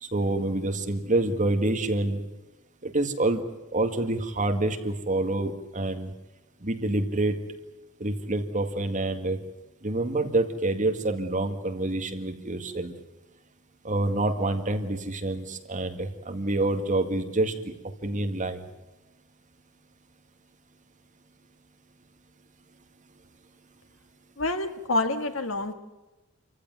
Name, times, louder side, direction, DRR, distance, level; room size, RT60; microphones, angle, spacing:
voice 1, 0.0-2.2 2.8-3.4 3.7-6.1 6.6-7.4 8.0-9.4 9.8-12.9 13.8-17.7 18.0-18.6, right 2 dB, 35° right, 6 dB, 2.0 m, -27 dB
voice 2, 24.4-25.7, left 2 dB, 70° left, 7 dB, 1.9 m, -27 dB
27.5 x 15.5 x 9.4 m, 1.1 s
head